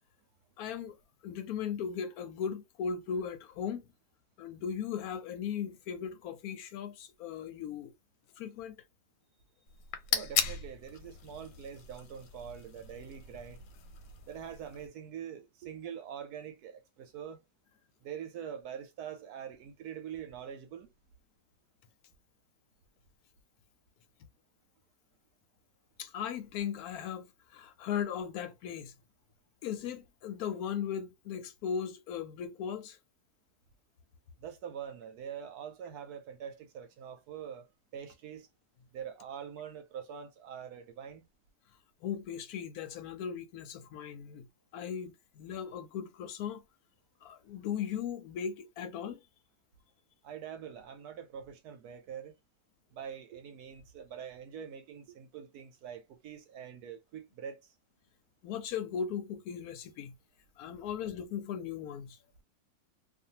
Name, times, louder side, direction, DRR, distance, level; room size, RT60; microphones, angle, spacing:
voice 1, 0.6-1.0 1.2-3.8 4.4-7.9 8.4-8.7 26.0-28.9 29.6-33.0 42.0-44.5 44.7-46.6 47.2-49.2 58.4-60.1 60.6-62.2, left 7 dB, 70° left, 0.9 m, -37 dB
sound 1, 9.7-14.9, left 8 dB, 90° left, 1.2 m, -37 dB
voice 2, 10.1-13.6 14.2-17.4 18.0-20.9 34.4-37.7 37.9-38.5 38.9-41.2 50.2-52.4 52.9-57.7, right 8 dB, 75° right, 1.1 m, -44 dB
2.6 x 2.4 x 2.7 m
omnidirectional pair, 1.8 m